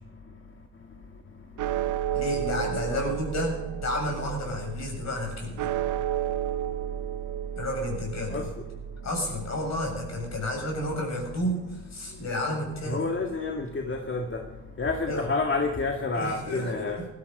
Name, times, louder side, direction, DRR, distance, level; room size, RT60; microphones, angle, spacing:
sound 1, 1.6-12.0, right 11 dB, 75° right, 0.9 m, -33 dB
voice 1, 2.1-5.7 7.5-8.5 9.0-13.0 15.1-15.3 16.1-17.1, left 1 dB, 60° left, 1 dB, 7.6 m, -31 dB
voice 2, 12.9-14.4 14.8-17.0, left 3 dB, 40° left, 3 dB, 1.9 m, -29 dB
19.0 x 13.0 x 5.5 m, 1.1 s
supercardioid pair, 65°, 31 cm